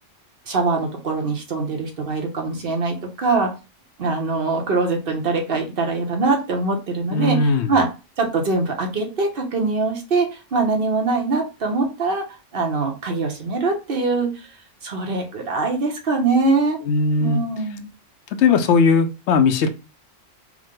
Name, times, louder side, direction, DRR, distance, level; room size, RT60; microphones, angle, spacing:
voice 1, 0.5-3.5 4.0-7.9 8.2-12.2 12.5-14.5 14.8-16.8 17.2-17.9, right 3 dB, 50° right, 1.1 m, -23 dB
voice 2, 7.1-7.8 16.8-17.4 18.4-19.7, left 4 dB, 70° left, 0.9 m, -18 dB
4.8 x 2.1 x 3.7 m
omnidirectional pair, 1.3 m